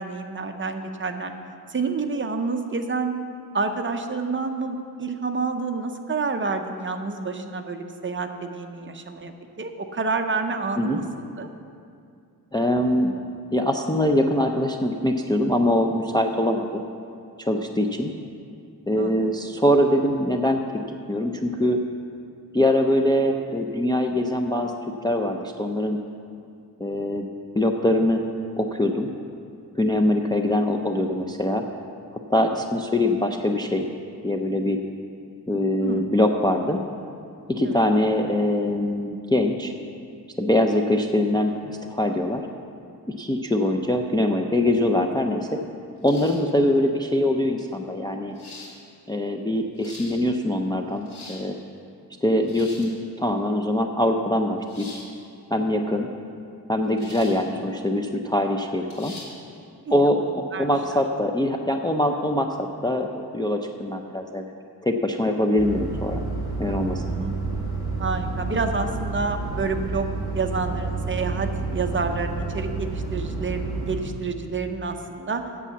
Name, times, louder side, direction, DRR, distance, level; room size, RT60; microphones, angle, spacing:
voice 1, 0.0-1.3 1.7-3.1 3.5-11.0 11.4-11.5 19.0-19.1 35.8-36.1 37.6-37.8 46.3-46.5 59.9-60.7 67.1-67.4 68.0-70.1 70.3-75.4, right 4 dB, 30° right, 6 dB, 0.6 m, -29 dB
voice 2, 12.5-13.1 13.5-16.8 17.4-18.1 18.9-20.8 21.1-21.8 22.5-24.7 25.0-26.0 26.8-27.3 27.5-28.2 28.6-29.1 29.7-31.6 32.3-33.9 34.2-34.8 35.5-36.8 37.5-39.7 40.4-42.4 43.2-45.6 46.0-48.4 49.1-51.6 52.2-52.9 53.2-54.9 55.5-56.1 56.7-59.1 59.9-60.2 60.6-64.4 64.8-66.2 66.6-67.0, left 1 dB, 10° left, 2 dB, 0.4 m, -23 dB
sound 1, 46.0-46.5 47.6-47.7 48.3-48.7 49.6-50.1 50.9-51.4 52.4-52.9 54.7-55.1 57.0-57.4 57.8-57.9 58.9-59.3, left 2 dB, 80° left, 2.6 m, -42 dB
sound 2, 65.6-74.0, right 3 dB, 10° right, 3.1 m, -30 dB
8.4 x 7.1 x 8.2 m, 2.4 s
wide cardioid pair, 145°, 39 cm